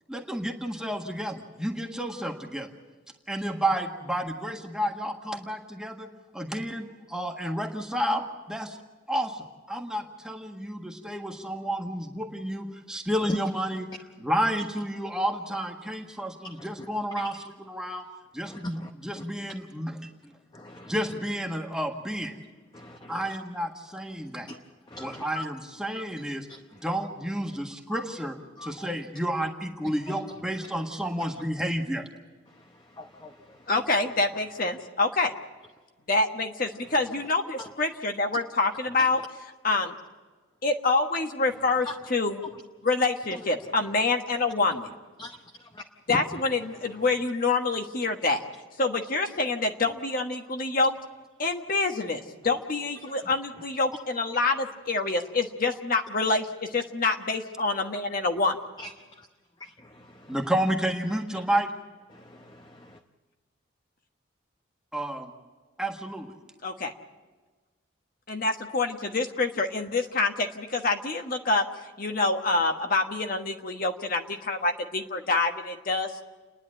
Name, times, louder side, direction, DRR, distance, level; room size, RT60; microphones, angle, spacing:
voice 1, 0.1-2.7 3.3-8.8 9.1-13.9 14.2-18.1 18.3-20.1 20.9-22.4 23.1-24.5 25.0-32.1 60.3-61.7 64.9-65.3 65.8-66.3, right 1 dB, 5° right, 1 dB, 1.6 m, -31 dB
voice 2, 18.5-19.3 20.5-21.0 22.7-23.3 24.5-24.6 24.9-25.4 26.5-26.6 27.9-28.0 28.6-28.9 32.5-33.7 37.6-37.7 39.0-39.1 45.2-45.8 53.0-53.1 58.8-59.3 59.6-60.3 61.3-61.4 62.1-63.0, left 1 dB, 20° left, 4 dB, 0.8 m, -41 dB
voice 3, 33.7-35.3 36.1-39.2 39.6-39.9 40.6-42.4 42.8-44.9 46.1-48.4 48.8-51.0 51.4-58.6 66.6-66.9 68.3-71.6 72.0-76.2, left 3 dB, 45° left, 4 dB, 1.3 m, -26 dB
30.0 x 10.5 x 9.0 m, 1.3 s
head